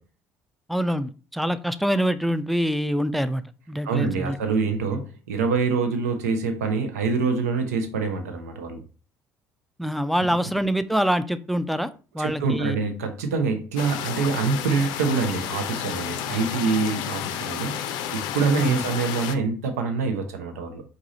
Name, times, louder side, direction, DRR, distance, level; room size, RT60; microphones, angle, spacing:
voice 1, 0.7-3.4 3.7-4.4 9.8-11.9 12.1-12.8 18.6-18.8, equal, ahead, 13 dB, 0.4 m, -25 dB
voice 2, 3.8-8.8 12.2-20.8, right 4 dB, 75° right, 6 dB, 0.8 m, -25 dB
sound 1, 13.8-19.4, left 10 dB, 60° left, 0.5 m, -31 dB
4.8 x 2.6 x 4.1 m, 0.36 s
figure-of-eight pair, 55°, 8 cm